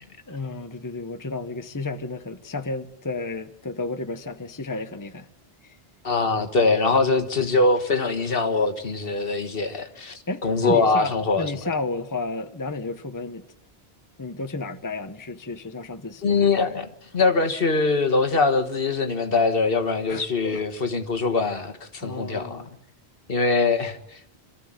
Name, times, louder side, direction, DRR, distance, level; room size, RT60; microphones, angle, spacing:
voice 1, 0.3-5.3 5.6-5.8 10.3-13.4 14.2-16.7 20.1-20.6 22.0-22.7, left 3 dB, 20° left, 0.9 m, -32 dB
voice 2, 6.0-11.5 16.2-22.6 23.3-24.4, left 3 dB, 60° left, 1.7 m, -23 dB
26.0 x 14.5 x 8.9 m
omnidirectional pair, 1.1 m